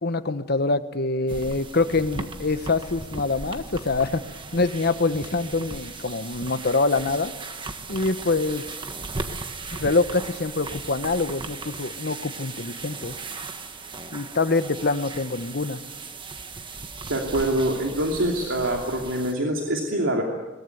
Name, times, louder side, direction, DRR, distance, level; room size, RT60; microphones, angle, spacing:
voice 1, 0.0-4.2 4.5-7.3 7.9-8.6 9.7-13.1 14.1-15.8, left 3 dB, 55° left, 11 dB, 1.1 m, -25 dB
sound 1, 1.3-19.3, right 3 dB, 25° right, 1.5 m, -37 dB
voice 2, 17.0-20.2, right 1 dB, 80° right, 0 dB, 2.9 m, -25 dB
22.0 x 20.0 x 9.4 m, 1.2 s
head